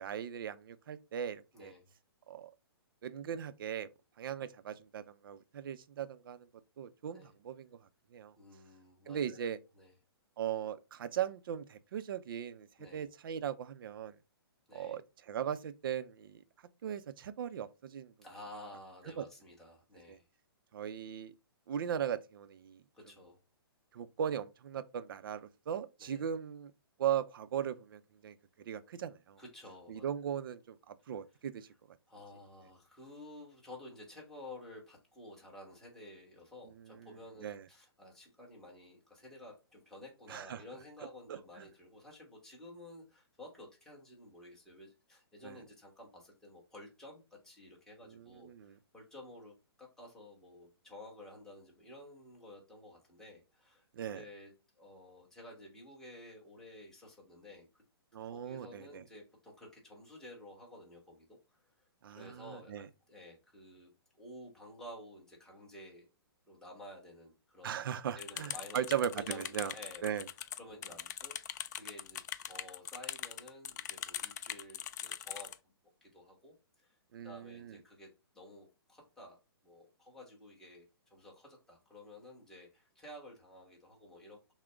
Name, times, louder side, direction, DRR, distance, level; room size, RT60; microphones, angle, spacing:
voice 1, 0.0-1.7 2.3-2.5 3.0-3.9 4.2-6.5 6.8-7.7 8.1-8.3 9.1-9.6 10.4-12.7 12.9-14.1 14.7-15.0 15.3-16.4 16.8-18.1 19.2-19.3 20.1-20.2 20.7-21.3 21.7-22.8 23.9-26.7 27.0-28.3 28.7-29.4 29.9-31.7 37.4-37.6 40.3-40.6 41.3-41.4 45.4-45.5 48.1-48.7 54.0-54.2 58.1-58.8 62.0-62.9 67.6-69.7 70.0-70.2 77.1-77.6, right 9 dB, 60° right, 0.5 m, -38 dB
voice 2, 1.5-1.9 7.1-7.3 8.4-9.9 12.8-13.1 14.7-15.0 18.2-20.2 22.9-23.4 26.0-26.2 29.3-30.1 31.3-31.4 32.1-53.8 54.1-57.8 58.3-61.3 61.6-61.7 62.1-63.9 64.2-66.1 66.5-67.8 68.1-68.8 69.1-75.5 76.0-77.0 77.2-79.4 79.6-84.5, left 1 dB, 5° left, 1.3 m, -52 dB
sound 1, 68.2-75.6, left 10 dB, 45° left, 0.3 m, -42 dB
6.0 x 2.2 x 3.4 m
hypercardioid pair, 150°, 13 cm